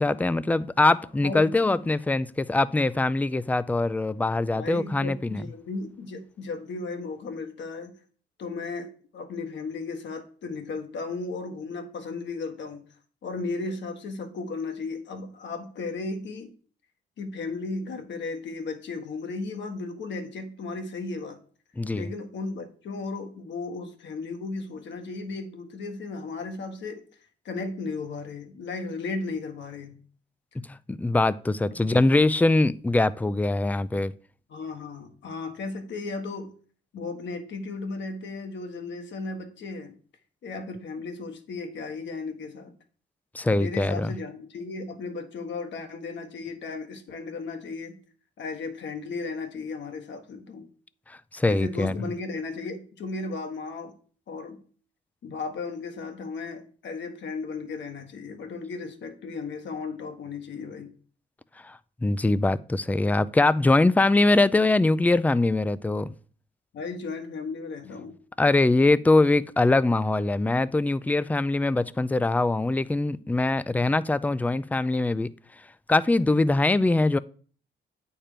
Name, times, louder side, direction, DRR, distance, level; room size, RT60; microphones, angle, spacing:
voice 1, 0.0-5.4 21.8-22.1 30.9-34.1 43.3-44.1 51.3-52.0 61.6-66.1 68.4-75.3 75.9-77.2, left 2 dB, 10° left, 0.4 m, -22 dB
voice 2, 1.2-1.8 4.5-7.9 8.4-12.8 13.2-16.5 17.2-21.4 21.9-27.0 27.4-30.0 31.9-32.0 34.5-36.5 36.9-40.0 40.4-42.7 43.5-48.0 48.4-50.7 51.5-53.9 54.3-54.6 55.2-60.9 66.7-68.2, left 3 dB, 65° left, 1.5 m, -35 dB
8.8 x 4.5 x 5.1 m
cardioid pair, 90°, 20 cm